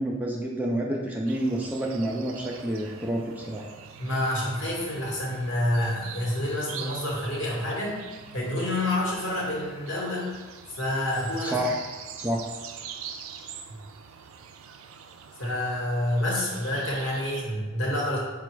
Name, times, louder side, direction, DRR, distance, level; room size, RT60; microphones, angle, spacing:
voice 1, 0.0-3.7 11.5-11.8 12.2-12.4, right 1 dB, 10° right, -2 dB, 0.3 m, -28 dB
sound 1, 1.3-17.4, right 7 dB, 85° right, 0.3 m, -44 dB
voice 2, 4.0-8.0 8.3-10.4 10.7-11.6 15.4-18.2, left 1 dB, 65° left, -4 dB, 1.2 m, -28 dB
4.0 x 2.3 x 4.5 m, 1.4 s
head